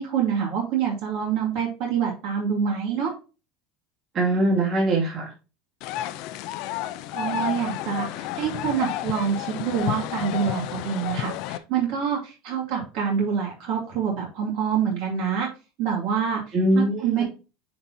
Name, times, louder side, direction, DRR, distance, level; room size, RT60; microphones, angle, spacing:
voice 1, 0.0-3.1 7.1-15.5 15.8-16.4 16.7-17.2, right 7 dB, 60° right, -1 dB, 2.4 m, -26 dB
voice 2, 4.1-5.3 16.5-17.2, right 1 dB, 30° right, -3 dB, 2.6 m, -22 dB
sound 1, 5.8-11.6, left 13 dB, 55° left, 0.5 m, -31 dB
9.3 x 4.1 x 2.9 m, 0.32 s
cardioid pair, 165°, 0 cm